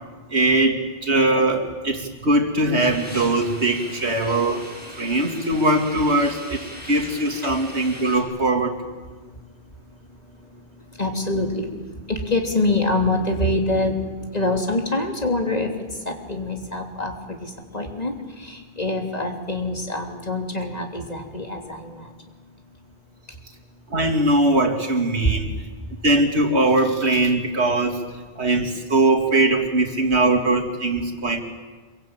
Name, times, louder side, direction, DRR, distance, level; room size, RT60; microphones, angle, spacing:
voice 1, 0.3-4.6 5.0-6.6 6.9-8.8 23.9-25.6 26.0-28.0 28.4-31.4, right 2 dB, 90° right, 4 dB, 2.9 m, -21 dB
sound 1, 2.8-8.2, equal, 10° right, 7.0 m, -39 dB
voice 2, 11.0-11.7 12.1-14.0 14.3-15.7 16.0-18.1 18.4-22.1 25.2-25.4, left 2 dB, 40° left, 3 dB, 3.3 m, -25 dB
26.0 x 23.5 x 8.9 m, 1.4 s
omnidirectional pair, 1.1 m